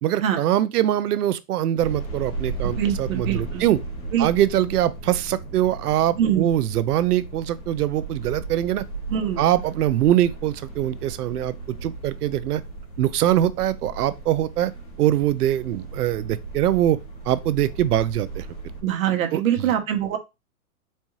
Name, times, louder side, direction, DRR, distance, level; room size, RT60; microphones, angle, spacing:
voice 1, 0.0-3.8 4.2-8.8 9.4-11.6 11.8-12.6 13.0-14.7 15.0-17.0 17.3-18.5 19.3-19.4, right 12 dB, 85° right, 0.6 m, -22 dB
sound 1, 1.8-18.8, right 3 dB, 15° left, 0.7 m, -36 dB
voice 2, 2.6-3.7 4.1-4.3 6.2-6.5 9.1-9.4 18.8-20.2, right 10 dB, 65° right, 1.0 m, -23 dB
4.3 x 2.3 x 3.0 m
hypercardioid pair, 150°, 45 cm